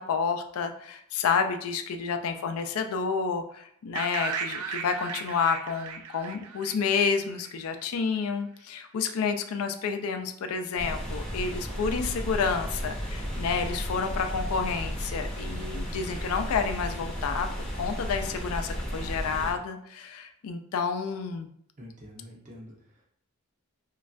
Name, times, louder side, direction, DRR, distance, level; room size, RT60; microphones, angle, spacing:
voice 1, 0.0-17.5 17.7-21.5, left 5 dB, 80° left, 6 dB, 0.4 m, -30 dB
sound 1, 3.9-7.8, right 6 dB, 90° right, 0.4 m, -36 dB
sound 2, 10.8-19.5, equal, 5° left, 0.6 m, -34 dB
voice 2, 21.8-23.1, equal, 35° right, -2 dB, 0.7 m, -47 dB
3.1 x 2.3 x 2.5 m, 0.68 s
head